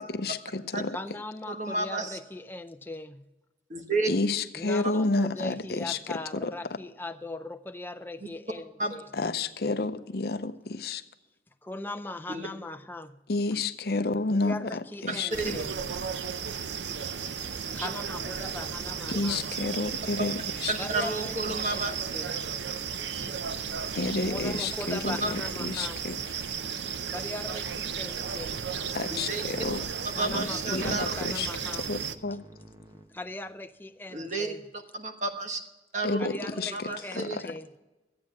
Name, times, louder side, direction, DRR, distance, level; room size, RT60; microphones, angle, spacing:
voice 1, 0.0-1.0 4.1-6.5 9.1-11.0 13.3-15.6 19.1-20.7 23.9-26.2 28.9-29.9 30.3-31.5 31.8-32.4 36.0-37.6, left 3 dB, 60° left, 11 dB, 0.6 m, -30 dB
voice 2, 0.9-3.3 4.5-9.1 11.6-13.2 14.3-15.8 17.7-19.4 20.8-22.4 23.0-23.7 24.0-26.4 27.1-28.6 30.1-31.9 33.1-34.6 36.2-37.7, left 2 dB, 10° left, 9 dB, 0.5 m, -39 dB
voice 3, 1.5-2.2 3.7-4.1 8.8-8.9 12.3-12.5 15.1-15.5 17.8-17.9 20.7-22.0 25.2-25.3 29.1-29.4 30.2-31.1 34.1-34.5 34.9-35.6 35.9-36.3 36.7-37.4, right 2 dB, 40° right, 5 dB, 1.3 m, -31 dB
sound 1, 15.3-32.2, right 7 dB, 85° right, 0.6 m, -34 dB
Musical instrument, 16.6-33.7, right 1 dB, 20° right, 0.9 m, -51 dB
13.5 x 8.6 x 6.0 m, 1.1 s
head